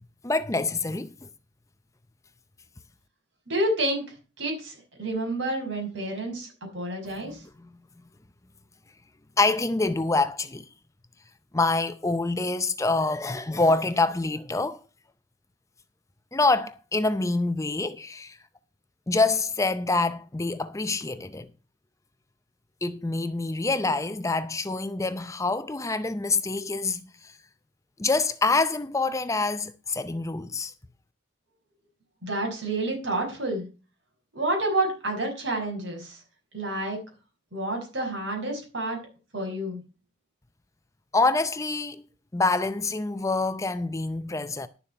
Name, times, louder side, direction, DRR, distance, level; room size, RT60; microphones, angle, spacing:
voice 1, 0.2-1.1 7.2-7.4 9.4-10.7 11.5-14.8 16.3-18.4 19.1-21.5 22.8-27.3 28.0-30.7 41.1-42.0 42.3-44.7, left 3 dB, 15° left, 0.5 m, -26 dB
voice 2, 3.5-4.0 4.4-6.5 6.7-7.4 32.2-33.6 34.3-36.2 36.5-37.0 37.5-39.0 39.3-39.8, right 1 dB, 65° right, 5.7 m, -29 dB
11.5 x 7.1 x 5.6 m
head